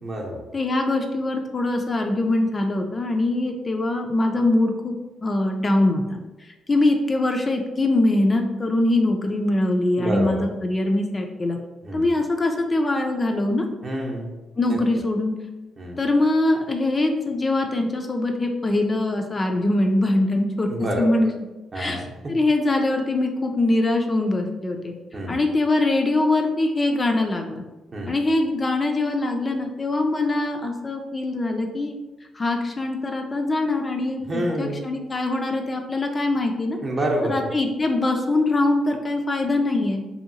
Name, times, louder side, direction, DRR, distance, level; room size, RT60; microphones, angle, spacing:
voice 1, 0.0-0.4 10.0-10.4 11.8-12.1 13.8-14.3 14.7-14.8 15.8-16.0 20.7-21.1 21.7-22.3 25.1-25.4 27.9-28.1 34.2-34.8 36.8-37.5, right 1 dB, 40° right, -1 dB, 0.7 m, -27 dB
voice 2, 0.5-4.9 5.2-11.6 11.9-13.7 14.6-15.4 16.0-20.7 21.0-21.3 21.7-22.0 22.3-24.9 25.3-27.6 28.1-31.9 32.3-36.8 37.3-40.0, left 2 dB, 30° left, 3 dB, 0.3 m, -23 dB
2.7 x 2.7 x 2.6 m, 1.1 s
cardioid pair, 90°, 0 cm